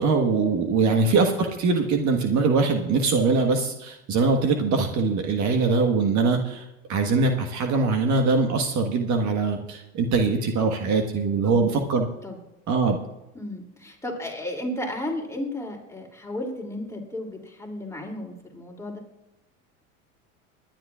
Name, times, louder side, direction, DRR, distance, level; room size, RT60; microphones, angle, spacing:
voice 1, 0.0-12.1 12.7-13.0, right 4 dB, 45° right, 4 dB, 1.5 m, -22 dB
voice 2, 11.4-11.9 12.2-12.4 13.3-19.0, left 1 dB, 5° left, 1 dB, 2.9 m, -34 dB
24.5 x 10.5 x 2.5 m, 0.92 s
hypercardioid pair, 95°, 41 cm